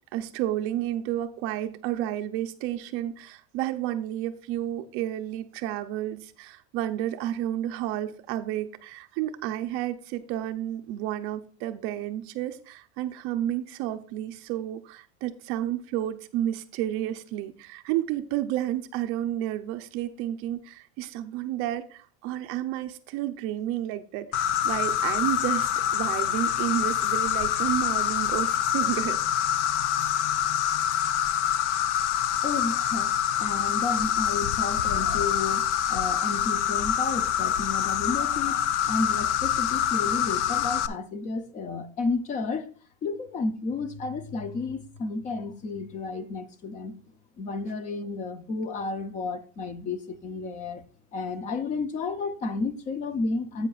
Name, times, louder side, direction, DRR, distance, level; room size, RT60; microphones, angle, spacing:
voice 1, 0.1-29.2, right 12 dB, 40° right, 0.5 m, -31 dB
Insect, 24.3-40.9, left 9 dB, 80° left, 0.7 m, -26 dB
voice 2, 32.4-33.1 33.4-42.7 43.0-47.0 47.4-50.8 51.1-53.7, left 3 dB, 20° left, 0.5 m, -32 dB
10.5 x 8.5 x 2.3 m
cardioid pair, 175°, 35 cm